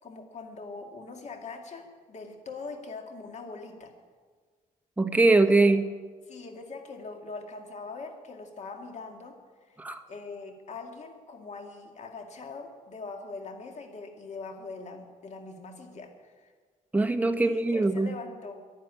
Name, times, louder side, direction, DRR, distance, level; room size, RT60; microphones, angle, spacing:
voice 1, 0.0-3.9 6.3-9.4 9.7-9.8 10.1-16.5 17.4-18.6, left 3 dB, 50° left, 4 dB, 2.2 m, -42 dB
voice 2, 5.0-5.9 9.8-10.0 16.9-18.1, right 2 dB, 10° right, 5 dB, 1.0 m, -22 dB
11.0 x 10.5 x 9.8 m, 1.5 s
cardioid pair, 115°, 15 cm